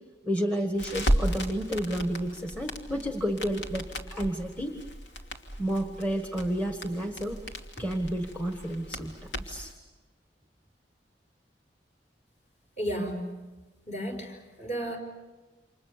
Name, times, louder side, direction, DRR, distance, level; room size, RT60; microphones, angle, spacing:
voice 1, 0.2-4.8 5.6-7.4 7.8-9.1 9.4-9.7, equal, 10° left, 4 dB, 1.6 m, -31 dB
Crackle, 0.8-9.7, equal, 85° left, 2.7 m, -34 dB
voice 2, 12.8-13.3 13.9-15.0, equal, 40° left, 3 dB, 5.7 m, -33 dB
29.5 x 27.0 x 6.8 m, 1.2 s
head